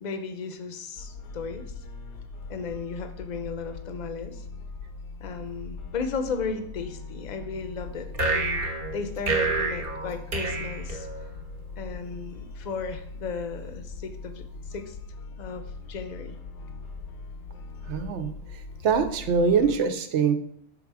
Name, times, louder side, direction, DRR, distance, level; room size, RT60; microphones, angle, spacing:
voice 1, 0.0-1.6 2.5-4.4 5.2-11.1 11.8-15.0 15.3-16.4, left 5 dB, 45° left, 8 dB, 0.6 m, -35 dB
sound 1, 1.0-19.8, left 3 dB, 75° left, 0.9 m, -41 dB
sound 2, 8.1-11.6, right 3 dB, 50° right, 1.0 m, -28 dB
voice 2, 17.9-18.3 18.8-20.3, right 6 dB, 80° right, 8 dB, 0.9 m, -23 dB
5.6 x 3.5 x 4.7 m, 0.68 s
omnidirectional pair, 1.2 m